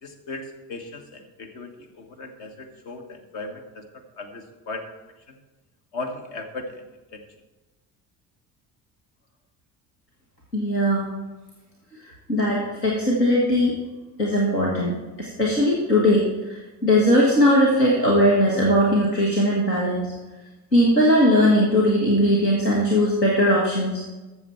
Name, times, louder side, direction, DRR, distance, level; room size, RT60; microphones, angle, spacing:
voice 1, 0.0-3.8 4.1-4.9 5.3-5.4 5.9-7.2, left 2 dB, 65° left, 4 dB, 1.4 m, -37 dB
voice 2, 10.5-11.1 12.3-13.7 14.2-20.1 20.7-24.0, equal, 85° left, -3 dB, 1.5 m, -19 dB
13.5 x 7.0 x 4.4 m, 1.2 s
figure-of-eight pair, 50°, 48 cm